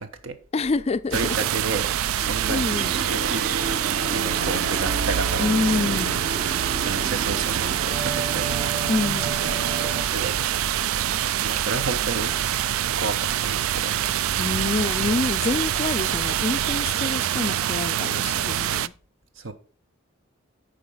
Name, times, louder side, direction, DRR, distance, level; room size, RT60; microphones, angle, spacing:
voice 1, 0.0-0.4 1.1-2.7 3.1-3.4 3.9-6.0 6.8-8.6 9.4-10.4 11.4-12.4 13.0-13.9 19.4-19.5, right 3 dB, 70° right, 1.1 m, -32 dB
voice 2, 0.5-1.2 2.2-2.9 5.4-6.1 8.9-9.3 14.4-18.9, left 3 dB, 30° left, 0.4 m, -27 dB
sound 1, 0.6-16.9, equal, 25° right, 0.6 m, -41 dB
sound 2, 1.1-18.9, right 11 dB, 90° right, 0.4 m, -25 dB
sound 3, 2.7-10.0, right 3 dB, 45° right, 0.9 m, -31 dB
8.4 x 5.0 x 5.7 m
head